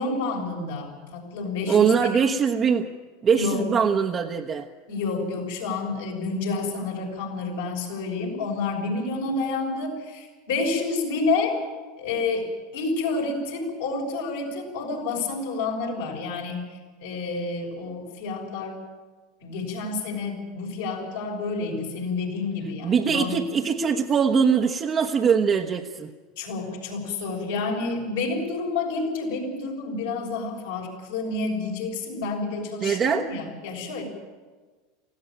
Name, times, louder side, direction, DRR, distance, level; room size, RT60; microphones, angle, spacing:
voice 1, 0.0-2.1 3.3-3.7 4.9-11.6 12.0-16.6 17.0-18.8 19.4-23.3 26.4-34.0, left 3 dB, 70° left, 0 dB, 6.3 m, -29 dB
voice 2, 1.7-2.9 3.2-4.7 22.8-26.1 32.8-33.3, right 6 dB, 35° right, 1 dB, 1.2 m, -22 dB
19.5 x 15.5 x 9.1 m, 1.3 s
hypercardioid pair, 85°, 0 cm